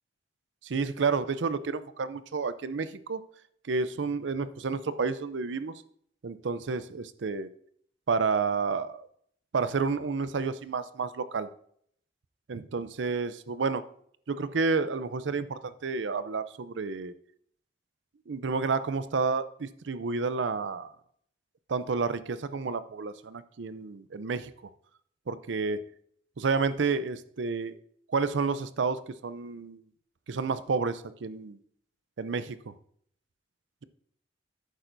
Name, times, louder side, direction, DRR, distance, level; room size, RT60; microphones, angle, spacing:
voice 1, 0.6-3.2 3.6-5.7 6.2-7.5 8.1-9.1 9.5-11.5 12.5-13.8 14.3-17.1 18.3-20.9 21.7-24.5 25.3-25.8 26.4-27.7 28.1-29.8 30.3-31.6 32.2-32.7, right 4 dB, 80° right, 14 dB, 0.5 m, -30 dB
11.0 x 9.0 x 2.6 m, 0.65 s
head